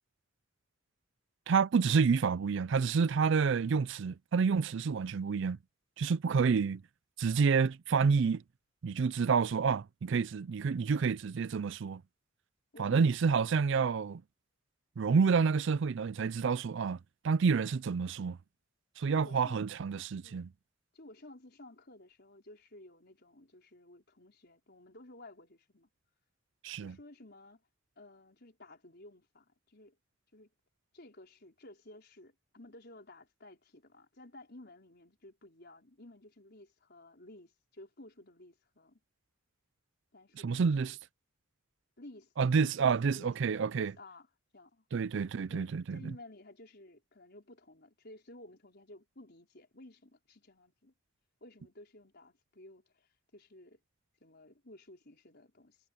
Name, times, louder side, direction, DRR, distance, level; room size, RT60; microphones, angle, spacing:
voice 1, 1.5-5.6 6.0-6.8 7.2-8.4 8.8-12.0 12.8-14.2 15.0-17.0 17.2-18.4 19.0-20.5 26.6-27.0 40.4-41.0 42.4-43.9 44.9-46.0, right 5 dB, 60° right, 0.4 m, -29 dB
voice 2, 12.7-13.1 19.0-19.6 20.2-20.4 20.9-25.9 26.8-27.6 28.0-30.0 30.3-30.5 30.9-39.0 40.1-41.0 42.0-42.3 42.6-43.4 43.7-44.3 44.5-44.8 45.5-50.9 51.4-53.8 54.2-55.8, left 1 dB, 50° left, 5.0 m, -54 dB
head